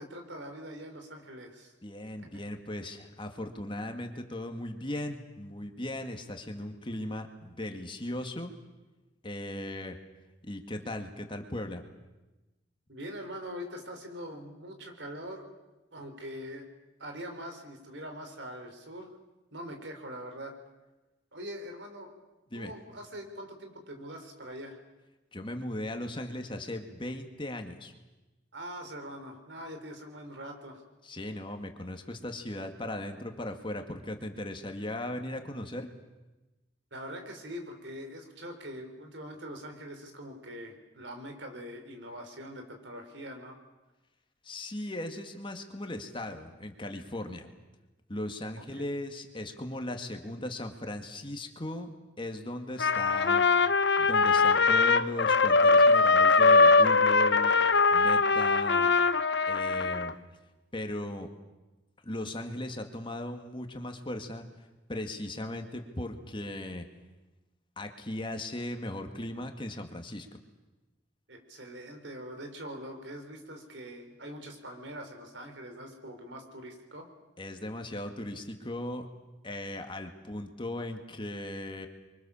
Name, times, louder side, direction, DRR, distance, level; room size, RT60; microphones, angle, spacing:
voice 1, 0.0-1.7 2.2-2.3 12.9-15.5 15.9-16.7 17.0-19.1 19.5-20.5 21.3-22.1 22.5-24.8 28.5-30.8 36.9-43.6 48.7-48.9 71.3-77.1, equal, 75° right, 5 dB, 4.5 m, -43 dB
voice 2, 1.8-8.5 9.2-10.0 10.4-11.8 22.5-22.7 25.3-27.9 31.0-35.9 44.4-47.5 48.1-51.9 52.2-53.4 54.0-57.5 57.9-58.9 59.5-60.1 60.7-61.3 62.0-64.5 64.9-66.9 67.8-70.3 77.4-79.1 79.4-81.9, left 1 dB, 30° left, 5 dB, 2.2 m, -37 dB
Trumpet, 52.8-60.1, left 4 dB, 65° left, 1.0 m, -22 dB
29.0 x 24.0 x 7.2 m, 1.1 s
head